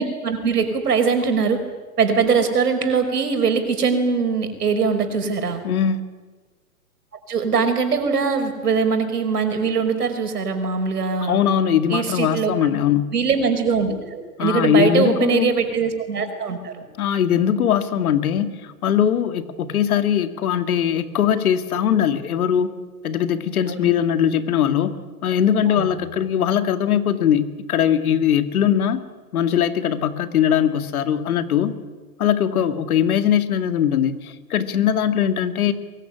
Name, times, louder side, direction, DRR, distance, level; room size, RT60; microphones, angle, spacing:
voice 1, 0.0-1.6 2.0-5.6 7.3-11.4 11.9-12.5 13.1-16.8 23.7-23.9 25.7-25.9, right 5 dB, 85° right, 6 dB, 5.5 m, -21 dB
voice 2, 5.6-6.0 11.2-13.1 14.4-15.5 17.0-22.7 23.0-24.9 25.2-29.0 29.3-31.8 32.2-35.7, left 9 dB, 70° left, 10 dB, 2.4 m, -20 dB
22.5 x 22.5 x 10.0 m, 1.3 s
hypercardioid pair, 125°, 45 cm